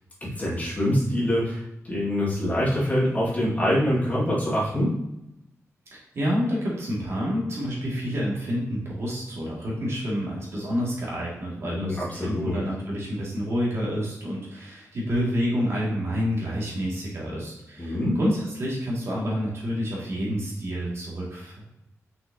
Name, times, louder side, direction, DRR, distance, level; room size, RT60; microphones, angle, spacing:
voice 1, 0.2-5.0 11.6-12.6 17.8-18.2, equal, 30° left, -7 dB, 2.3 m, -25 dB
voice 2, 5.9-21.5, equal, 55° right, -5 dB, 2.4 m, -28 dB
6.0 x 5.9 x 2.9 m, 0.87 s
wide cardioid pair, 150°, 6 cm